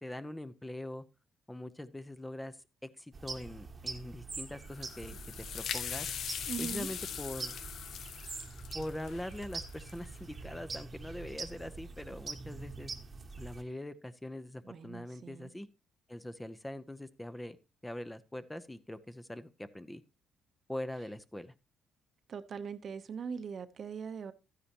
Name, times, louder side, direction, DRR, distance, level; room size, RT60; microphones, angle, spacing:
voice 1, 0.0-1.0 1.5-5.2 5.5-6.1 6.6-7.6 8.7-12.9 13.4-15.7 16.1-17.6 17.8-20.0 20.7-21.5, left 1 dB, 10° left, 0.8 m, -42 dB
sound 1, 3.1-13.6, right 4 dB, 30° right, 1.1 m, -44 dB
sound 2, 4.7-10.2, left 8 dB, 65° left, 0.6 m, -41 dB
voice 2, 6.5-6.9 14.7-15.5 22.3-24.3, right 6 dB, 55° right, 0.8 m, -41 dB
12.5 x 9.8 x 2.9 m
cardioid pair, 90°, 0 cm